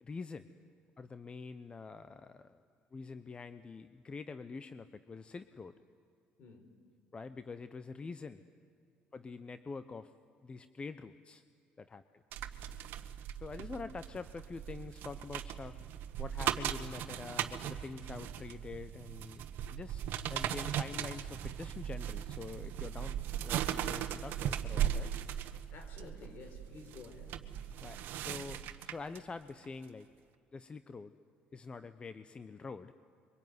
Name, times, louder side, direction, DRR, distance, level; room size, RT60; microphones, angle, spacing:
voice 1, 0.0-0.5 1.0-2.6 2.9-5.7 7.1-8.4 9.1-10.1 10.4-11.4 11.8-12.2 13.4-15.8 16.2-19.4 19.7-20.0 20.3-25.1 27.8-30.1 30.5-31.1 31.5-32.9, left 4 dB, 30° left, 12 dB, 0.9 m, -46 dB
voice 2, 6.4-6.7 25.7-27.4, left 4 dB, 60° left, 6 dB, 4.8 m, -51 dB
sound 1, 12.3-29.2 29.6-29.8, right 10 dB, 70° right, 1.3 m, -38 dB
26.0 x 24.0 x 9.6 m, 2.4 s
supercardioid pair, 80°, 4 cm